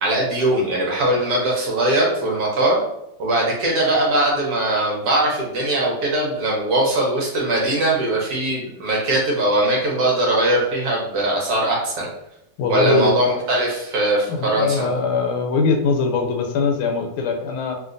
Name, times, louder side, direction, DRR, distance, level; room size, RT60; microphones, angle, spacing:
voice 1, 0.0-2.8 3.2-12.1 12.7-14.9, right 1 dB, 65° right, -2 dB, 1.0 m, -20 dB
voice 2, 12.6-13.3 14.3-17.7, left 4 dB, 90° left, 3 dB, 1.5 m, -21 dB
3.0 x 2.8 x 2.5 m, 0.83 s
omnidirectional pair, 2.3 m